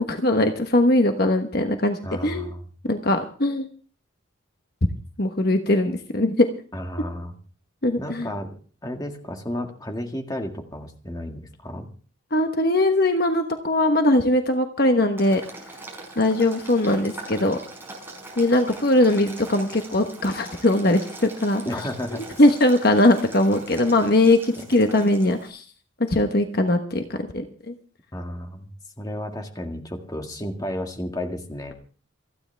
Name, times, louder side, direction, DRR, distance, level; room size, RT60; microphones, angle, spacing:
voice 1, 0.0-2.5 2.9-3.7 5.2-6.5 7.8-8.3 12.3-15.4 16.2-17.6 18.4-21.6 22.4-25.6 26.1-27.0 27.3-27.7, left 1 dB, 45° left, 5 dB, 1.2 m, -20 dB
voice 2, 2.0-2.6 6.7-7.4 8.0-8.5 8.8-11.9 21.6-22.4 24.6-24.7 28.1-28.7 29.0-31.7, left 1 dB, 20° left, 4 dB, 1.9 m, -32 dB
Boiling, 15.2-25.5, right 2 dB, 10° right, 4.8 m, -42 dB
28.0 x 10.0 x 3.4 m, 0.40 s
head